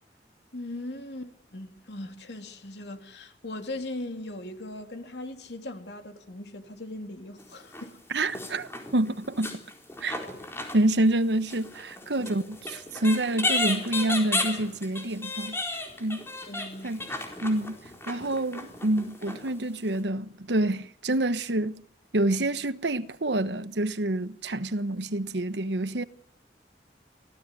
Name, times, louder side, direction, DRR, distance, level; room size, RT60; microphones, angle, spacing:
voice 1, 0.5-8.0 12.2-12.4 16.5-17.1, left 1 dB, 75° left, 3.0 m, -39 dB
sound 1, 7.4-7.9 8.2-11.2 11.5-19.5 19.9-20.0, left 2 dB, 15° left, 4.1 m, -34 dB
voice 2, 8.1-9.6 10.0-10.2 10.7-15.6 16.0-16.2 16.8-17.0 17.4-17.8 18.1-21.8 22.1-26.0, right 1 dB, 80° right, 1.2 m, -27 dB
24.5 x 16.0 x 9.8 m
head